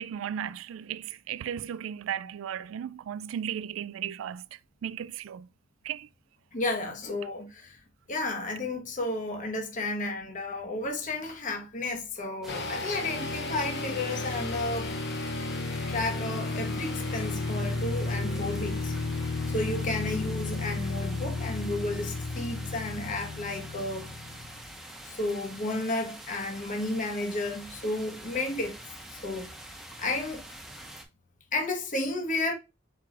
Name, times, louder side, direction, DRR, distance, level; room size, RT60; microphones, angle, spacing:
voice 1, 0.0-4.4 4.8-5.5 5.8-6.1, right 9 dB, 70° right, 0.3 m, -35 dB
voice 2, 6.5-7.8 8.1-14.9 15.9-18.9 19.5-24.1 25.1-28.8 29.2-29.5 30.0-30.4 31.5-32.5, left 2 dB, 40° left, 1.1 m, -32 dB
sound 1, 12.4-31.0, right 1 dB, ahead, 1.0 m, -45 dB
sound 2, 12.5-24.7, left 3 dB, 60° left, 0.7 m, -33 dB
4.6 x 4.5 x 2.4 m
head